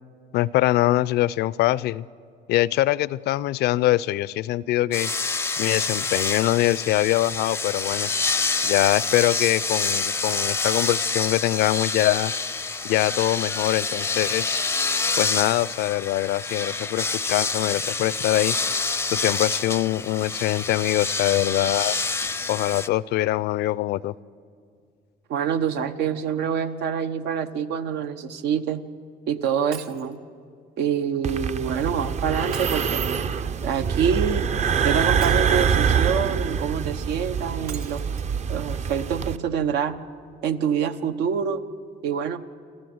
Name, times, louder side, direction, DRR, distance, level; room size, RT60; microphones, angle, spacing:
voice 1, 0.3-2.0 2.5-5.1 5.6-8.1 8.6-12.3 12.8-14.6 15.2-18.6 19.1-22.0 22.5-24.1, left 15 dB, 75° left, 21 dB, 0.5 m, -23 dB
sound 1, 4.9-22.9, left 4 dB, 15° left, 0.5 m, -27 dB
voice 2, 25.3-28.8 29.3-30.2 30.8-33.2 33.6-34.4 34.8-38.0 38.5-40.0 40.4-41.6 42.0-42.4, right 7 dB, 85° right, 9 dB, 1.0 m, -26 dB
Shatter, 29.7-30.2 32.5-33.4 35.2-36.0 37.7-38.3 38.9-39.0 39.3-39.4, right 7 dB, 70° right, 1.5 m, -42 dB
sound 2, 31.2-39.4, right 7 dB, 40° right, 0.7 m, -25 dB
28.0 x 13.0 x 7.9 m, 2.2 s
cardioid pair, 110°, 17 cm